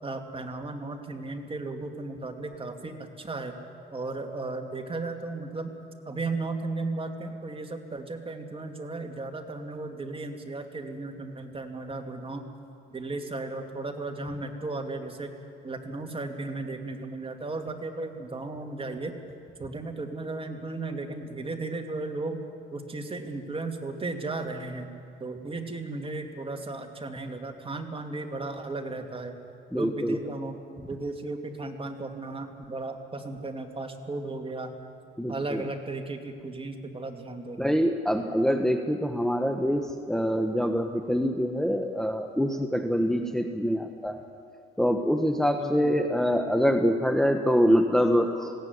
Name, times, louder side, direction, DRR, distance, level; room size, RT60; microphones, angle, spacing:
voice 1, 0.0-3.6 3.9-5.7 6.1-12.4 12.9-15.3 15.6-19.2 19.6-22.4 22.7-24.9 25.2-29.3 29.7-34.7 35.3-37.8 45.6-46.0, right 3 dB, 25° right, 4 dB, 2.3 m, -35 dB
voice 2, 29.7-30.2 35.2-35.6 37.6-44.2 44.8-48.5, equal, ahead, 5 dB, 1.2 m, -25 dB
20.5 x 16.5 x 9.6 m, 2.4 s
cardioid pair, 90°, 20 cm